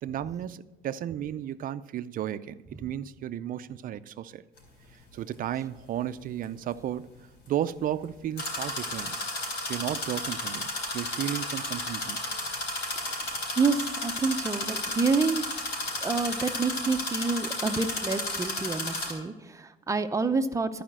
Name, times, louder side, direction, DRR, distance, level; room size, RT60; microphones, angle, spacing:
voice 1, 0.0-4.4 5.1-7.2 7.5-9.2 9.6-10.7 10.9-12.2, right 11 dB, 55° right, 0.5 m, -33 dB
sound 1, 4.6-4.7 8.4-19.1, left 2 dB, 80° left, 3.8 m, -33 dB
voice 2, 13.6-15.4 16.0-20.8, right 4 dB, 20° right, 0.7 m, -28 dB
13.5 x 5.0 x 7.5 m
cardioid pair, 110°, 17 cm